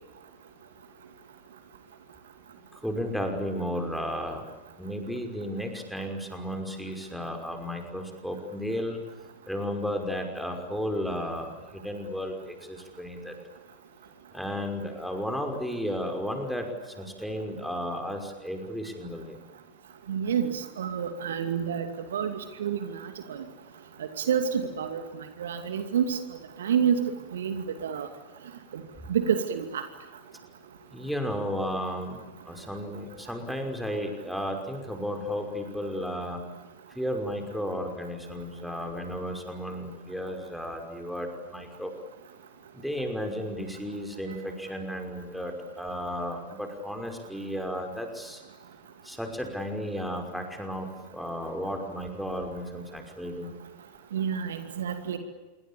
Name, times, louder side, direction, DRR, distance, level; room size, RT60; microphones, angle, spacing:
voice 1, 2.8-4.4 4.8-9.0 9.5-13.3 14.3-19.4 30.9-36.4 37.0-41.9 42.7-48.4 49.0-53.5, equal, ahead, 3 dB, 5.7 m, -33 dB
voice 2, 20.1-23.4 24.0-26.2 26.6-28.1 29.1-29.8 54.1-55.2, right 8 dB, 60° right, 8 dB, 2.5 m, -29 dB
27.5 x 24.0 x 8.7 m, 1.2 s
figure-of-eight pair, 90°, 0 cm